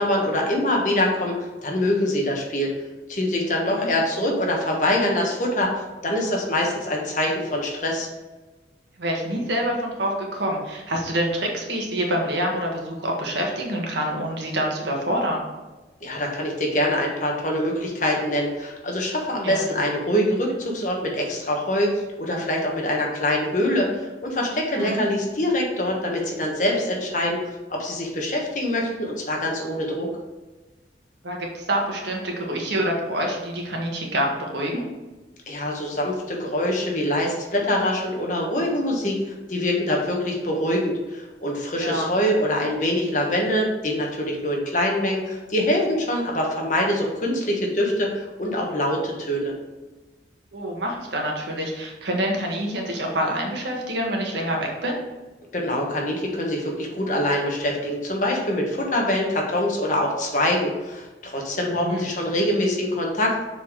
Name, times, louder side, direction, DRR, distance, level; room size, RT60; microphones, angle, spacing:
voice 1, 0.0-2.7 3.1-5.7 6.0-8.1 16.0-27.4 27.7-30.1 35.5-49.5 55.5-63.3, left 1 dB, 45° left, -1 dB, 1.4 m, -24 dB
voice 2, 9.0-15.4 19.4-19.7 24.7-25.0 31.2-34.8 41.8-42.1 50.5-55.0 61.8-62.0, equal, 80° right, 0 dB, 1.6 m, -26 dB
6.9 x 4.1 x 4.7 m, 1.2 s
head